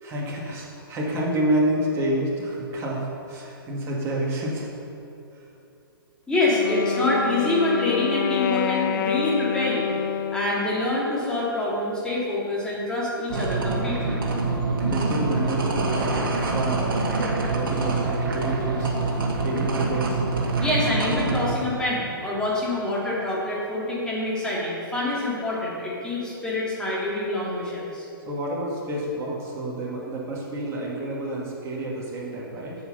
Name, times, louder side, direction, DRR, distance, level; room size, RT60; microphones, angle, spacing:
voice 1, 0.0-4.7 14.8-19.1 19.4-20.2 28.3-32.8, right 1 dB, 20° right, -4 dB, 2.4 m, -29 dB
voice 2, 6.3-10.0 10.3-14.2 20.6-28.0, left 2 dB, 5° left, -7 dB, 2.8 m, -26 dB
Wind instrument woodwind instrument, 6.4-10.9, left 8 dB, 55° left, 0.5 m, -28 dB
sound 1, 13.3-21.5, right 3 dB, 60° right, 2.1 m, -25 dB
9.5 x 8.0 x 5.6 m, 2.8 s
hypercardioid pair, 125°, 12 cm